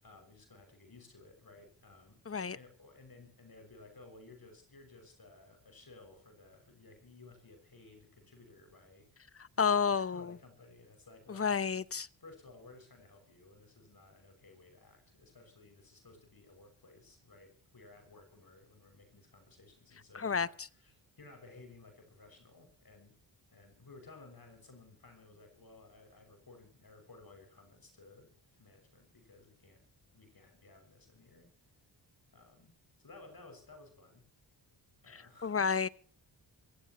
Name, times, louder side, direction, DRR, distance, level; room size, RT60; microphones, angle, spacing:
voice 1, 0.0-9.3 9.6-11.6 12.2-23.2 23.5-29.9 30.1-31.5 32.3-34.3 35.0-35.7, left 3 dB, 50° left, 6.3 m, -57 dB
voice 2, 2.3-2.6 9.6-10.3 11.3-12.1 20.1-20.7 35.4-35.9, left 6 dB, 30° left, 0.8 m, -30 dB
25.0 x 15.5 x 3.0 m
cardioid pair, 70°, 46 cm